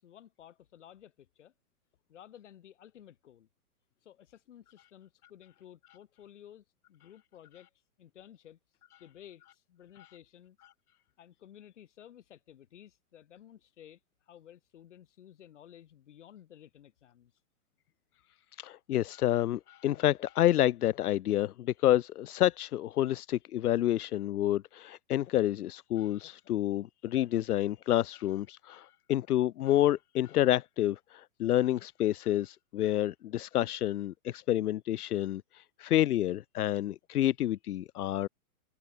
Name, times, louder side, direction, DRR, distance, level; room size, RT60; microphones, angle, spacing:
voice 1, 0.0-1.5 2.1-3.5 4.0-7.7 8.0-8.6 9.0-10.6 11.2-17.3, left 10 dB, 50° left, 6.1 m, -54 dB
voice 2, 18.6-38.3, left 13 dB, 85° left, 0.7 m, -29 dB
hypercardioid pair, 170°, 44 cm